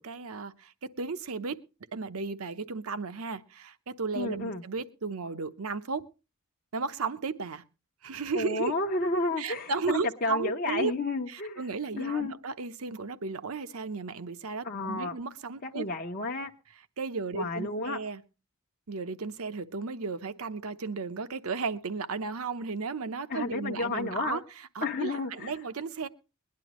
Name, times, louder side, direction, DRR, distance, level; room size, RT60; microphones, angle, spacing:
voice 1, 0.0-1.6 1.9-6.1 6.7-7.6 8.0-8.7 9.4-10.9 11.3-15.8 17.0-18.2 18.9-24.4 24.7-26.1, right 4 dB, 75° right, 12 dB, 0.8 m, -34 dB
voice 2, 4.1-4.6 8.3-11.6 12.0-12.3 14.6-15.2 15.6-16.5 17.3-18.0 23.3-24.4 24.8-25.5, left 2 dB, 40° left, 1 dB, 0.8 m, -31 dB
21.0 x 10.5 x 3.0 m, 0.29 s
head